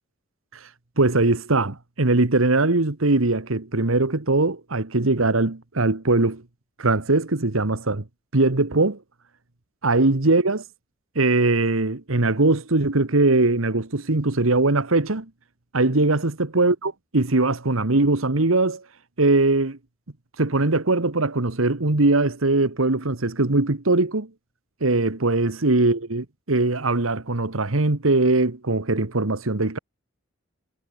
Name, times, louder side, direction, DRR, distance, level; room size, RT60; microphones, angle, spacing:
voice 1, 1.0-6.4 6.8-8.0 8.3-9.0 9.8-10.6 11.1-15.3 15.7-18.8 19.2-19.8 20.4-24.3 24.8-29.8, right 2 dB, 90° right, 1.6 m, -21 dB
head